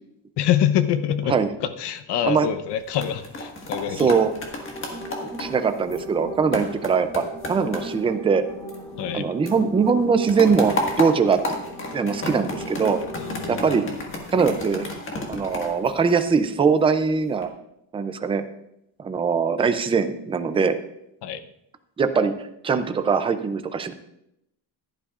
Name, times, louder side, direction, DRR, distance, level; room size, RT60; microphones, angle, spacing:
voice 1, 0.4-4.2 9.0-9.3 13.1-13.7 21.2-21.4, left 10 dB, 60° left, 11 dB, 0.8 m, -25 dB
sound 1, 2.7-9.2 9.5-16.6 17.1-17.5, left 2 dB, 25° left, 1.6 m, -33 dB
voice 2, 4.0-4.3 5.2-8.4 9.1-11.4 11.9-13.0 13.5-13.8 14.3-14.9 15.3-17.5 17.9-18.4 19.0-20.8 22.0-23.9, right 5 dB, 15° right, 9 dB, 0.3 m, -21 dB
sound 2, 4.4-13.6, equal, 5° left, 1.8 m, -38 dB
15.0 x 11.5 x 2.4 m, 0.81 s
cardioid pair, 180°, 46 cm